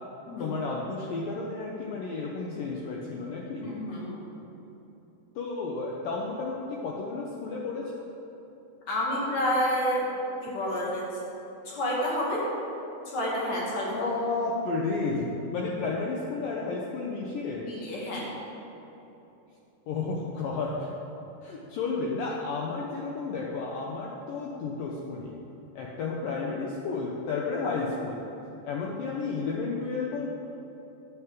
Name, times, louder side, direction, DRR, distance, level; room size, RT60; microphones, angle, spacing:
voice 1, 0.4-3.7 5.4-8.1 14.0-17.7 19.9-20.9 21.4-25.3 25.8-28.2 28.6-30.3, left 4 dB, 80° left, -2 dB, 2.1 m, -32 dB
voice 2, 3.5-4.2 8.9-10.0 10.4-11.1 11.6-12.4 13.1-14.0 17.5-18.3, equal, 45° left, -5 dB, 3.4 m, -29 dB
10.5 x 7.3 x 7.5 m, 3.0 s
omnidirectional pair, 5.0 m